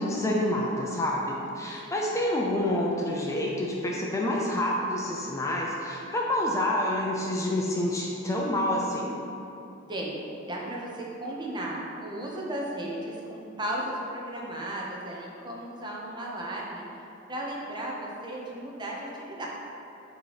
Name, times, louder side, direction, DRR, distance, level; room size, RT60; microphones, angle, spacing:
voice 1, 0.0-9.2, left 1 dB, 15° left, -2 dB, 0.4 m, -28 dB
voice 2, 9.9-10.2 10.5-16.8 17.3-19.5, right 1 dB, 20° right, -3 dB, 0.7 m, -35 dB
6.6 x 3.0 x 4.8 m, 2.8 s
head